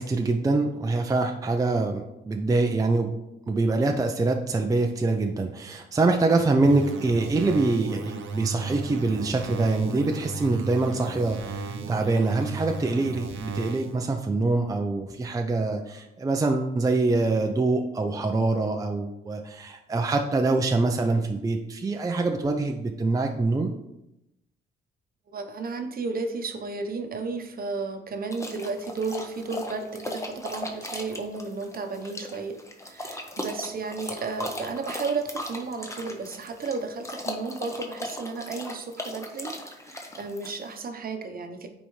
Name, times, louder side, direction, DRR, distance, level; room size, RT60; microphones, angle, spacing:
voice 1, 0.0-3.1 3.5-23.7, right 3 dB, 15° right, 4 dB, 0.5 m, -25 dB
sound 1, 6.6-14.0, right 4 dB, 75° right, 0.9 m, -35 dB
voice 2, 25.3-41.7, right 4 dB, 50° right, 6 dB, 0.9 m, -33 dB
sound 2, 28.3-40.8, left 1 dB, 15° left, 0.9 m, -37 dB
9.1 x 4.1 x 3.2 m, 0.88 s
cardioid pair, 90°, 20 cm